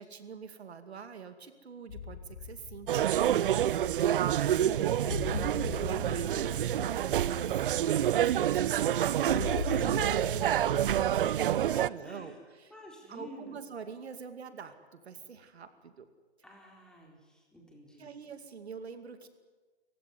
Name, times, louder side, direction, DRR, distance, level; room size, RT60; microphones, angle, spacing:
voice 1, 0.0-4.9 5.3-12.7 13.1-16.1 18.0-19.3, right 6 dB, 75° right, 9 dB, 2.4 m, -45 dB
sound 1, 1.9-11.3, left 5 dB, 65° left, 7.0 m, -41 dB
sound 2, 2.9-11.9, right 11 dB, 55° right, 0.7 m, -28 dB
voice 2, 4.6-5.1 9.2-10.0 11.8-12.4 12.7-13.6 16.4-18.1, left 1 dB, ahead, 0 dB, 4.0 m, -51 dB
29.5 x 15.5 x 9.6 m, 1.4 s
hypercardioid pair, 145°, 33 cm